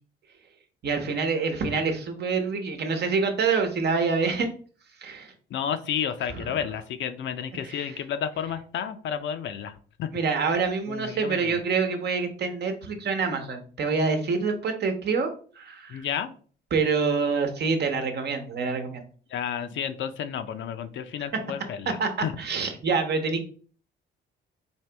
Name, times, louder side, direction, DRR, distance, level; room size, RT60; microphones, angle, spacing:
voice 1, 0.8-4.5 5.0-5.3 10.1-15.3 15.6-16.0 16.7-19.0 22.0-22.1 22.4-23.5, right 4 dB, 55° right, 6 dB, 1.0 m, -26 dB
voice 2, 5.5-9.7 10.0-10.1 10.9-11.6 15.9-16.3 19.3-22.4, left 8 dB, 70° left, 10 dB, 0.6 m, -31 dB
4.4 x 2.9 x 3.4 m, 0.42 s
cardioid pair, 90°, 20 cm